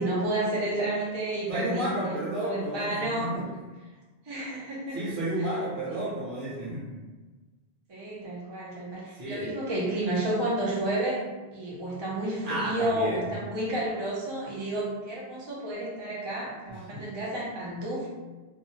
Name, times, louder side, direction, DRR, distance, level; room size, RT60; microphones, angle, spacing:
voice 1, 0.0-3.3 4.2-5.0 5.9-6.0 7.9-11.2 11.5-18.1, right 1 dB, 40° right, -5 dB, 0.4 m, -31 dB
voice 2, 1.5-3.4 4.9-7.0 9.1-9.6 12.4-13.3 16.7-17.0, right 1 dB, 55° right, -7 dB, 1.0 m, -32 dB
2.6 x 2.0 x 2.7 m, 1.3 s
omnidirectional pair, 1.1 m